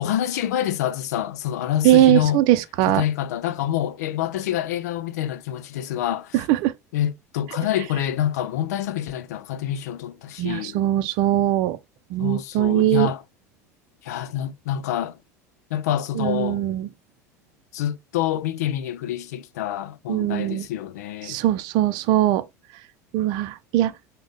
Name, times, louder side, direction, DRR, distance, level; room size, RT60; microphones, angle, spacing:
voice 1, 0.0-2.4 2.9-6.3 6.9-10.8 12.2-13.2 14.0-15.2 15.7-16.6 17.7-21.4, left 11 dB, 75° left, 0.6 m, -27 dB
voice 2, 1.8-3.0 6.3-6.7 10.4-11.8 12.1-13.1 16.2-16.9 20.1-20.7 21.2-22.4 23.1-23.9, right 13 dB, 60° right, 0.5 m, -20 dB
6.3 x 2.3 x 3.5 m
hypercardioid pair, 80°, 9 cm